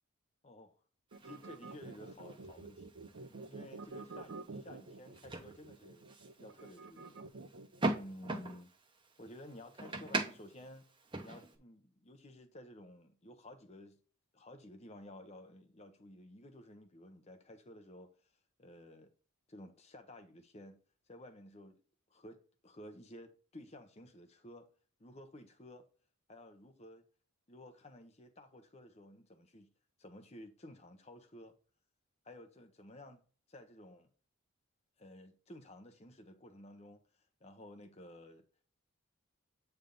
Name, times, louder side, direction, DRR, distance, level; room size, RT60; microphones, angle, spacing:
voice 1, 0.4-0.8 1.2-2.9 3.5-6.1 6.4-7.2 7.9-8.7 9.2-10.9 11.2-14.0 14.3-18.3 18.6-19.1 19.5-20.8 21.1-21.8 22.1-24.7 25.0-25.9 26.3-27.0 27.5-29.7 30.0-31.6 32.2-33.2 33.5-34.1 35.0-38.5, left 1 dB, 30° left, 0.8 m, -53 dB
sound 1, 1.1-11.6, right 2 dB, 20° right, 0.9 m, -43 dB
sound 2, 1.1-7.8, right 3 dB, 55° right, 0.7 m, -48 dB
8.3 x 3.4 x 3.7 m
head